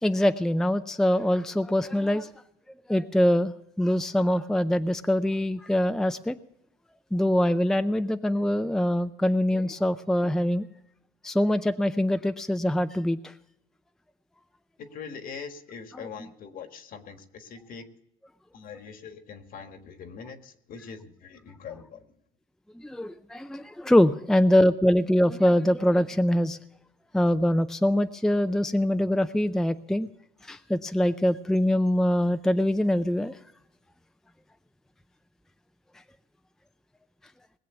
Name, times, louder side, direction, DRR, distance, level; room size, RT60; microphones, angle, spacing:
voice 1, 0.0-2.3 2.9-3.5 3.8-6.4 7.1-10.7 11.2-13.3 22.7-26.6 27.1-30.1 30.4-33.4, left 1 dB, 5° left, 9 dB, 0.5 m, -23 dB
voice 2, 14.8-17.8 18.5-22.1, left 6 dB, 55° left, 7 dB, 1.6 m, -42 dB
20.0 x 7.6 x 6.9 m, 0.84 s
cardioid pair, 110°, 17 cm